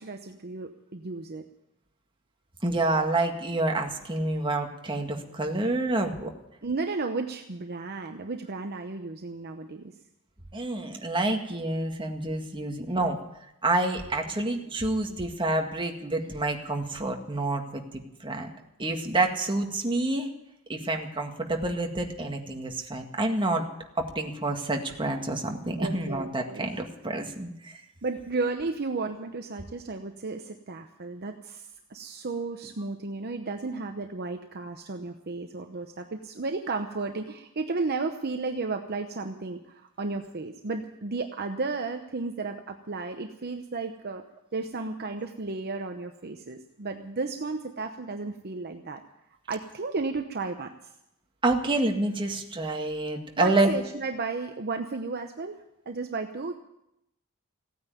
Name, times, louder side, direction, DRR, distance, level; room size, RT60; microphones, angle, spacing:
voice 1, 0.0-1.5 6.6-9.9 25.8-26.6 28.0-44.2 44.5-49.0 49.5-50.7 53.4-56.5, right 3 dB, 45° right, 6 dB, 0.9 m, -33 dB
voice 2, 2.6-6.3 10.5-13.2 13.6-17.8 18.2-18.5 18.8-20.3 20.7-23.6 24.0-27.8 51.4-53.7, right 2 dB, 20° right, 3 dB, 1.8 m, -28 dB
16.0 x 9.4 x 9.2 m, 0.84 s
head